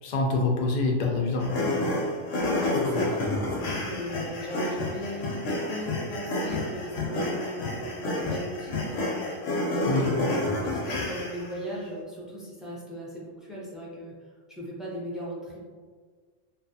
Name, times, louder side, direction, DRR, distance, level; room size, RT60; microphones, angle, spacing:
voice 1, 0.0-2.0 9.8-10.1, left 3 dB, 60° left, -1 dB, 0.4 m, -26 dB
sound 1, 1.4-11.6, left 2 dB, 80° left, 0.9 m, -29 dB
voice 2, 2.6-14.1 14.5-15.7, equal, ahead, -6 dB, 0.3 m, -38 dB
2.6 x 2.3 x 2.6 m, 1.6 s
omnidirectional pair, 1.2 m